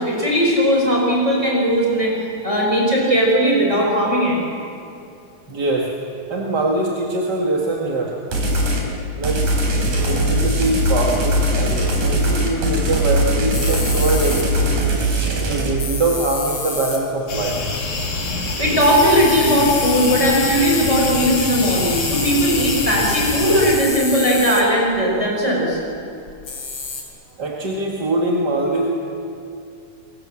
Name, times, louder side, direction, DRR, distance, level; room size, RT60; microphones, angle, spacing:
voice 1, 0.0-4.4 18.6-25.8, equal, 20° right, -3 dB, 5.9 m, -18 dB
voice 2, 5.5-8.3 9.2-9.5 10.0-14.9 15.4-17.7 27.4-28.9, right 2 dB, 35° right, -1 dB, 2.4 m, -23 dB
sound 1, 8.3-8.8 9.2-15.7, equal, 75° right, 5.9 m, -20 dB
sound 2, 13.5-14.5 15.7-17.0 18.4-18.5 18.8-25.0 25.7-25.8 26.3-27.0, left 3 dB, 40° left, 5.0 m, -28 dB
sound 3, 17.3-23.8, left 3 dB, 70° left, 4.7 m, -26 dB
29.5 x 23.0 x 7.7 m, 2.6 s
omnidirectional pair, 3.6 m